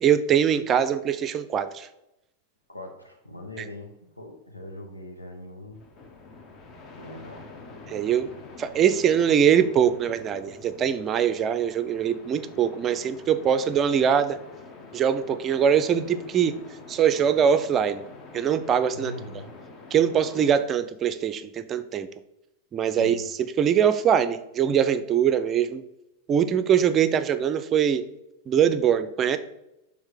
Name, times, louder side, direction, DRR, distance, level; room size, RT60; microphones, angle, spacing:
voice 1, 0.0-1.9 7.9-8.3 8.6-14.4 14.9-16.5 16.9-18.0 18.3-19.1 19.9-22.1 22.7-23.2 23.6-25.8 26.3-28.0 28.5-29.4, right 8 dB, 25° right, 11 dB, 0.4 m, -22 dB
voice 2, 2.7-5.8 6.8-7.5 18.9-19.5 23.0-23.2, left 1 dB, 85° left, 3 dB, 1.1 m, -41 dB
sound 1, 5.7-20.6, left 3 dB, 35° left, 0.9 m, -46 dB
6.4 x 3.4 x 4.9 m, 0.88 s
figure-of-eight pair, 90°, 0 cm